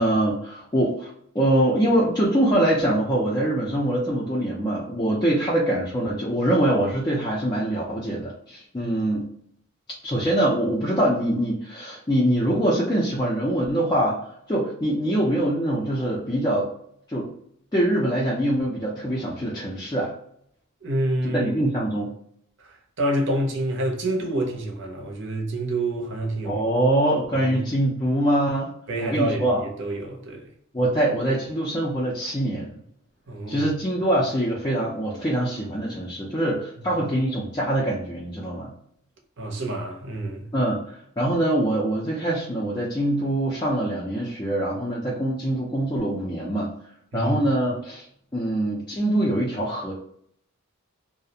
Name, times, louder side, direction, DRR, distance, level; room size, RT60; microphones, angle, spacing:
voice 1, 0.0-9.3 10.0-16.7 17.1-17.3 17.7-20.1 21.3-22.1 26.4-28.7 29.0-29.6 30.7-32.8 33.5-38.7 40.5-40.8 41.2-46.7 47.1-48.0 48.3-49.9, right 1 dB, 20° left, 0.4 m, -24 dB
voice 2, 20.8-21.5 23.0-26.6 27.3-27.6 28.9-30.5 33.3-33.7 39.4-40.5 47.1-47.4, right 1 dB, 55° right, 0.6 m, -27 dB
2.4 x 2.0 x 2.7 m
head